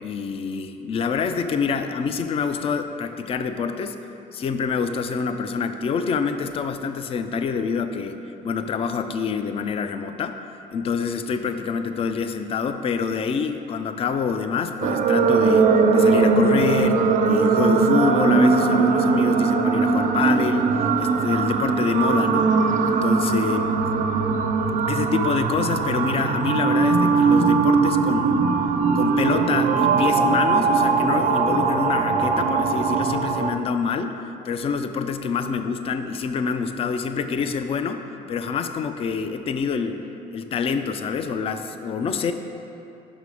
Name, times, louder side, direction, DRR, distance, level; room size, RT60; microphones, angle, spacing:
voice 1, 0.0-4.0 4.3-10.4 10.7-20.7 21.0-23.6 24.9-28.6 28.9-34.2 34.4-40.0 40.3-42.3, left 5 dB, 35° left, 9 dB, 0.4 m, -26 dB
sound 1, 14.8-33.5, right 4 dB, 50° right, 0.4 m, -20 dB
5.8 x 5.5 x 4.8 m, 2.8 s
cardioid pair, 110°, 17 cm